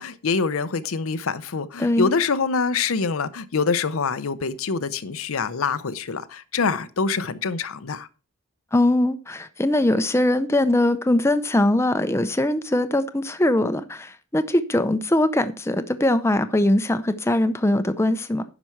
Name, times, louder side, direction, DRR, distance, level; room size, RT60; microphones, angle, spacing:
voice 1, 0.0-8.1, left 4 dB, 75° left, 0.6 m, -25 dB
voice 2, 1.8-2.1 8.7-18.4, left 1 dB, 10° left, 0.6 m, -21 dB
10.0 x 6.0 x 4.5 m
head